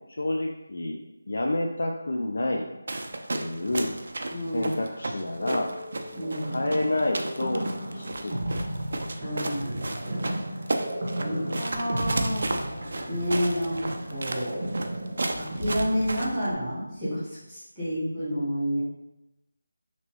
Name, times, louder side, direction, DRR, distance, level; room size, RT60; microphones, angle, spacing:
voice 1, 0.1-1.0 1.3-2.7 3.3-3.9 4.5-5.8 6.5-7.7 7.9-8.4 11.2-11.6, left 1 dB, 60° left, 0 dB, 0.3 m, -29 dB
sound 1, 2.9-16.5, right 2 dB, 55° right, 0.3 m, -34 dB
voice 2, 4.3-4.7 6.1-6.6 9.2-10.5 11.2-12.5 13.1-14.6 15.4-18.8, equal, ahead, -19 dB, 1.0 m, -30 dB
Keyboard (musical), 5.4-8.6, left 2 dB, 35° left, 1.0 m, -44 dB
sound 2, 6.2-16.7, right 1 dB, 40° right, 1.0 m, -34 dB
2.9 x 2.9 x 2.9 m, 0.96 s
figure-of-eight pair, 170°, 0 cm